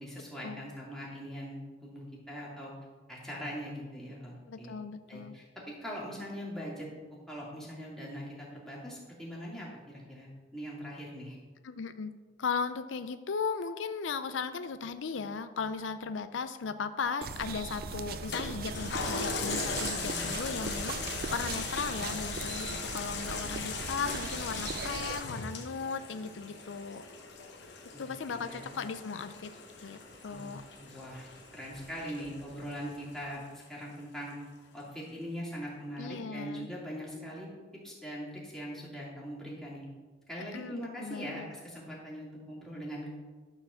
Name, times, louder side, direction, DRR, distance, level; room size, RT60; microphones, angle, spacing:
voice 1, 0.0-2.7 3.1-4.7 5.1-6.9 7.3-11.4 20.0-20.4 27.9-28.8 30.3-30.5 30.8-34.4 34.7-37.5 37.8-39.8 40.3-43.1, equal, 5° left, -5 dB, 2.5 m, -41 dB
voice 2, 4.5-5.4 11.6-12.1 12.4-27.0 28.0-29.5 29.8-30.6 36.0-36.7 40.5-41.5, left 5 dB, 80° left, 11 dB, 0.5 m, -37 dB
sound 1, 17.2-25.2, right 5 dB, 50° right, 0.4 m, -39 dB
Toilet flush, 18.3-33.1 33.6-33.7, left 5 dB, 65° left, 1.1 m, -39 dB
sound 2, 21.1-33.3, right 1 dB, 30° right, 1.0 m, -57 dB
12.5 x 4.6 x 6.9 m, 1.5 s
head